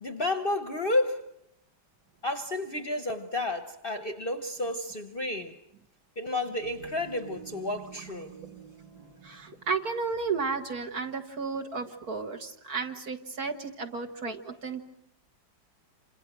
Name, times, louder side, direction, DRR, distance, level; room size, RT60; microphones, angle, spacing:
voice 1, 0.0-1.3 2.2-5.6 6.2-8.4, left 2 dB, 35° left, 1.0 m, -31 dB
sound 1, 6.6-10.9, right 6 dB, 85° right, 2.7 m, -49 dB
voice 2, 9.2-14.8, right 4 dB, 55° right, 2.1 m, -33 dB
28.0 x 27.0 x 6.1 m
omnidirectional pair, 2.0 m